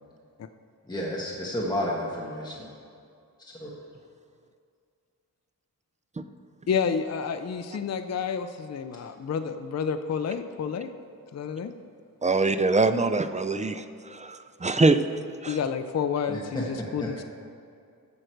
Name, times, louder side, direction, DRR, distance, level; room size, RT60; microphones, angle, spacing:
voice 1, 0.9-2.7 3.6-3.7 16.3-17.1, left 1 dB, 10° left, -4 dB, 1.4 m, -31 dB
voice 2, 6.7-10.9 11.3-11.7 15.5-17.2, left 6 dB, 45° left, 8 dB, 0.5 m, -30 dB
voice 3, 12.2-15.0 15.4-15.6, right 3 dB, 20° right, 10 dB, 0.4 m, -24 dB
14.5 x 6.4 x 4.5 m, 2.4 s
wide cardioid pair, 115°, 36 cm